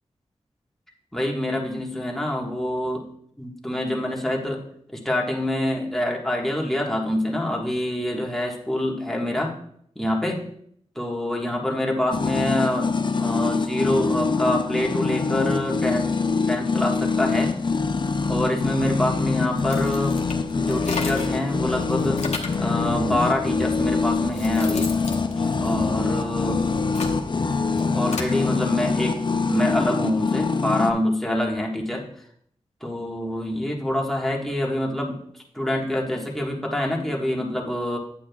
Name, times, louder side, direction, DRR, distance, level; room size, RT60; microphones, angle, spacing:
voice 1, 1.1-3.0 3.4-4.6 4.9-9.5 9.9-10.4 10.9-12.9 13.2-16.1 16.5-17.5 18.3-20.2 20.5-22.2 22.6-24.9 25.3-26.6 27.8-29.2 29.5-32.2 32.8-38.0, left 1 dB, 5° left, -2 dB, 1.5 m, -26 dB
sound 1, 12.1-30.9, left 4 dB, 45° left, 0.5 m, -24 dB
Car keys-enter-exit-ignition, 19.6-21.4 21.8-22.7 23.5-23.6 24.1-26.2 26.7-28.4, left 4 dB, 80° left, 0.9 m, -34 dB
8.6 x 8.6 x 2.3 m, 0.67 s
wide cardioid pair, 70°, 11 cm